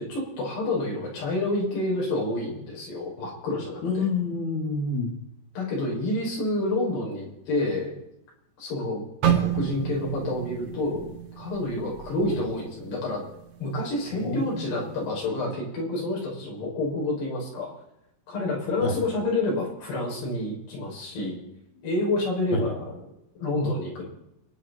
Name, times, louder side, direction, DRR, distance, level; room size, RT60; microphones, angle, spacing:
voice 1, 0.0-4.0 5.5-7.9 8.6-9.0 9.4-11.1 11.3-13.2 13.6-17.7 18.3-21.4 21.8-23.0 23.4-24.0, left 2 dB, 75° left, -3 dB, 8.4 m, -28 dB
voice 2, 3.8-5.1 14.1-14.7 18.8-19.0 22.5-22.6, left 3 dB, 45° left, -1 dB, 4.1 m, -28 dB
sound 1, 9.2-13.3 13.6-13.9 14.5-14.9, right 9 dB, 45° right, 2.4 m, -30 dB
30.0 x 10.5 x 4.3 m, 0.82 s
omnidirectional pair, 4.8 m